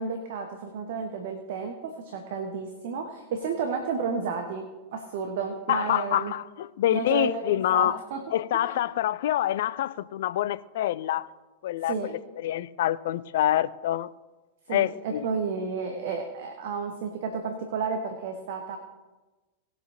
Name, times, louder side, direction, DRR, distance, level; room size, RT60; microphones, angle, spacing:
voice 1, 0.0-6.3 6.9-8.2 8.5-8.8 11.8-12.1 14.7-18.8, right 5 dB, 55° right, 1.2 m, -32 dB
voice 2, 5.7-8.0 8.3-11.3 11.6-14.1 14.7-15.3, left 12 dB, 55° left, 0.4 m, -26 dB
19.5 x 7.8 x 2.9 m
figure-of-eight pair, 90°, 0 cm